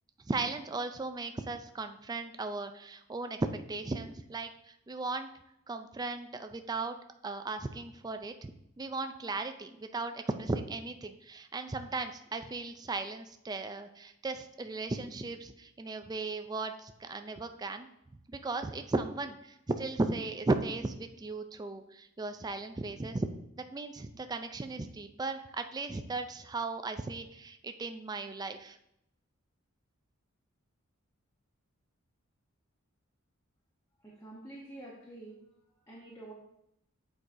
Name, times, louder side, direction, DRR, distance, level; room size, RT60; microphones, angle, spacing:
voice 1, 0.3-5.3 5.7-7.0 7.2-8.5 8.8-17.9 18.3-23.3 23.7-28.8, right 3 dB, 20° right, 8 dB, 0.3 m, -36 dB
voice 2, 34.0-35.4 35.8-36.3, right 2 dB, 15° left, -5 dB, 1.0 m, -48 dB
8.3 x 4.6 x 2.6 m, 0.78 s
head